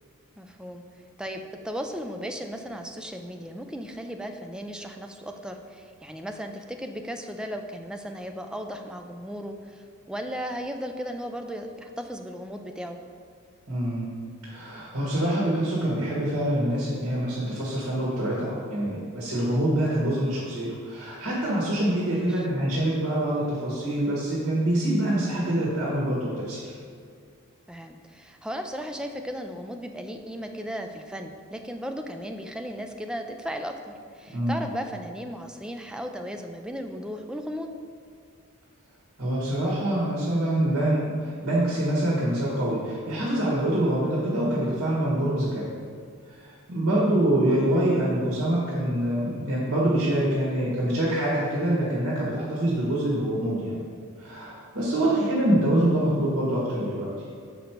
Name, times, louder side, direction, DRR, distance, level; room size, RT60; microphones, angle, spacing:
voice 1, 0.4-0.8 1.2-13.0 22.1-22.4 27.7-37.7 46.9-47.1 55.1-55.3, equal, 5° right, 4 dB, 0.4 m, -36 dB
voice 2, 13.7-14.1 14.4-26.6 34.3-34.6 39.2-45.6 46.3-53.8 54.2-57.1, right 1 dB, 70° right, -5 dB, 1.6 m, -25 dB
6.7 x 5.3 x 4.5 m, 2.2 s
head